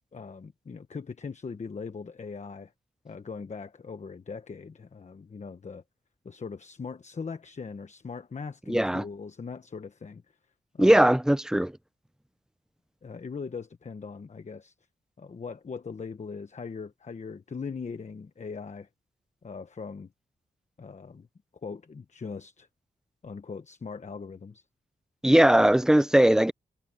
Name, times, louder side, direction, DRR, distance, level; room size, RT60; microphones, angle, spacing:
voice 1, 0.1-2.7 3.0-5.8 6.2-10.2 10.7-11.1 13.0-14.7 15.2-18.9 19.4-20.1 20.8-21.3 21.6-22.7 23.2-24.6, left 5 dB, 45° left, 1.2 m, -40 dB
voice 2, 8.7-9.0 10.8-11.7 25.2-26.5, right 1 dB, 5° right, 0.7 m, -19 dB
cardioid pair, 75°, 17 cm